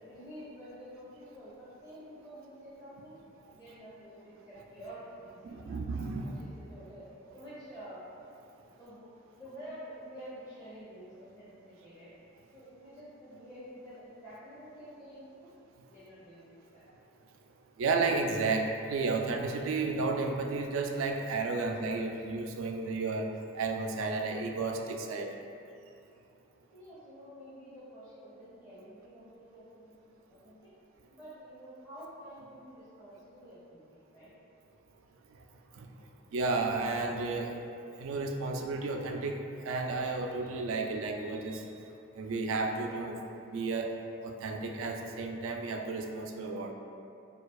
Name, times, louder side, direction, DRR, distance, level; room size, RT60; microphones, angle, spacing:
voice 1, 0.0-3.2 3.5-5.7 6.2-7.1 7.3-8.1 8.7-12.1 12.5-15.5 15.9-16.8 26.7-29.9 30.3-30.7 31.1-34.3, equal, 20° left, -13 dB, 1.1 m, -49 dB
voice 2, 5.4-6.4 17.8-25.3 35.8-35.9 36.3-37.5 38.0-41.6 42.1-43.2 43.5-43.9 44.2-46.7, right 3 dB, 80° right, 3 dB, 0.3 m, -32 dB
4.5 x 2.3 x 2.3 m, 2.6 s
head